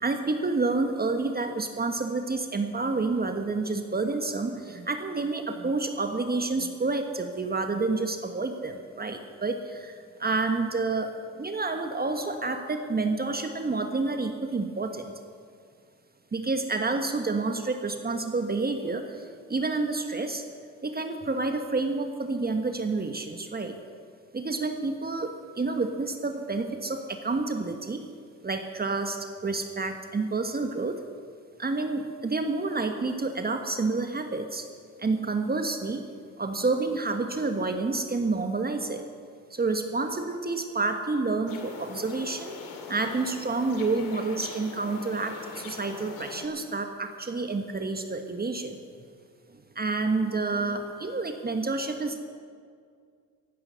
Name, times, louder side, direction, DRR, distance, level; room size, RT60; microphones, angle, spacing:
voice 1, 0.0-15.1 16.3-20.4 20.8-23.8 24.3-28.0 28.4-31.0 31.6-34.7 35.0-36.0 36.4-39.0 39.5-42.6 42.9-48.8 49.5-52.2, right 3 dB, 25° right, 6 dB, 1.4 m, -29 dB
sound 1, 41.5-46.5, left 5 dB, 70° left, 2.3 m, -41 dB
15.0 x 11.5 x 6.9 m, 2.2 s
hypercardioid pair, 55°, 35 cm